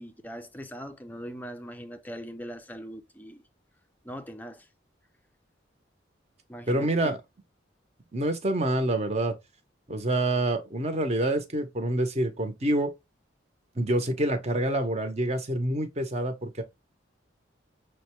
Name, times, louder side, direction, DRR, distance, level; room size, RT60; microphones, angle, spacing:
voice 1, 0.0-3.4 4.0-4.7 6.5-7.1, equal, 10° left, 0.5 m, -41 dB
voice 2, 6.7-7.2 8.1-9.3 9.9-12.9 13.8-16.6, right 1 dB, 35° right, 0.8 m, -27 dB
6.3 x 2.2 x 3.0 m
head